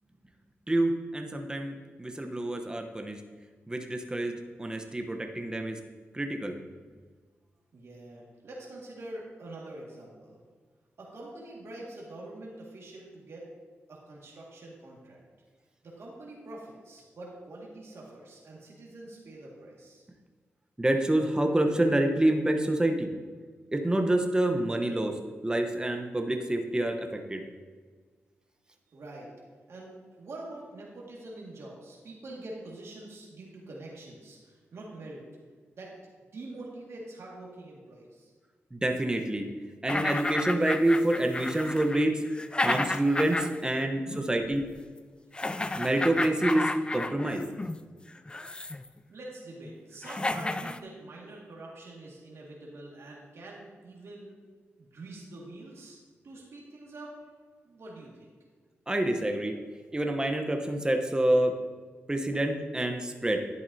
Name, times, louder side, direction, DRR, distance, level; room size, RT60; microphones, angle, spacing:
voice 1, 0.7-3.2 3.7-5.8 6.1-6.5 20.8-23.1 23.7-25.2 25.4-27.4 38.7-39.5 39.8-42.2 42.6-44.6 45.8-47.4 58.9-59.5 59.9-61.5 62.1-63.4, right 1 dB, 15° right, 4 dB, 0.9 m, -27 dB
voice 2, 7.7-10.4 11.0-13.5 13.9-15.2 15.8-20.1 28.9-29.3 29.7-35.2 35.7-35.9 36.3-38.3 49.1-54.4 54.8-57.3 57.6-58.3, right 2 dB, 70° right, -4 dB, 1.9 m, -45 dB
sound 1, 39.9-43.8 44.1-44.2 45.3-47.8 48.3-48.9 49.6-49.7 50.0-50.8, left 2 dB, 20° left, 0.4 m, -32 dB
10.5 x 8.2 x 2.8 m, 1.5 s
cardioid pair, 60°, 5 cm